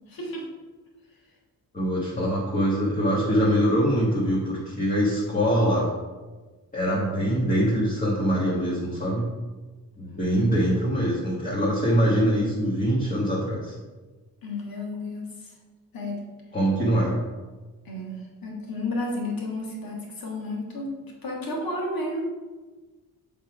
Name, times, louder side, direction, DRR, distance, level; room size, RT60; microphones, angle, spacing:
voice 1, 0.1-0.5 10.3-10.7 14.4-15.5 15.9-16.3 17.9-22.2, left 2 dB, 75° left, -1 dB, 1.7 m, -32 dB
voice 2, 1.7-5.9 6.7-9.3 10.0-13.7 16.5-17.2, equal, 20° left, -7 dB, 1.5 m, -23 dB
7.0 x 3.6 x 4.7 m, 1.3 s
wide cardioid pair, 135°, 35 cm